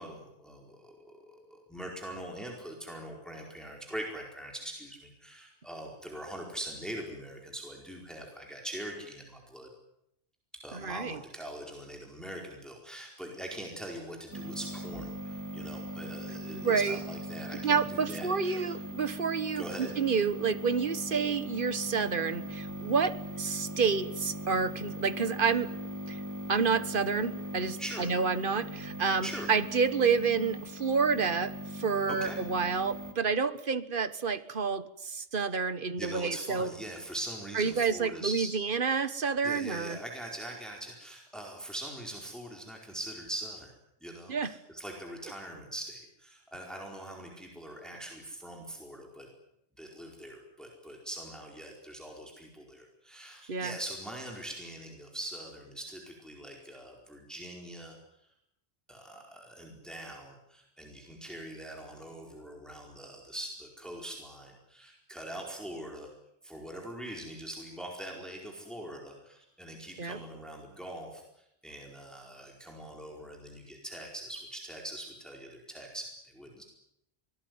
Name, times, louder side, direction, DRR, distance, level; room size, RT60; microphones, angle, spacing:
voice 1, 0.0-9.7 10.6-18.8 19.5-19.9 27.8-28.1 29.2-29.5 32.1-32.4 36.0-38.5 39.4-43.7 44.0-49.3 49.8-58.0 58.9-66.1 66.4-76.6, right 1 dB, ahead, 0 dB, 4.6 m, -42 dB
voice 2, 10.7-11.2 16.6-17.0 17.6-25.8 26.1-26.2 26.5-36.7 37.5-40.0 44.3-44.5 53.5-53.8 70.0-70.2, right 5 dB, 50° right, 13 dB, 1.4 m, -29 dB
sound 1, 14.3-33.1, equal, 15° right, 2.8 m, -40 dB
25.0 x 19.0 x 9.6 m, 0.80 s
omnidirectional pair, 1.2 m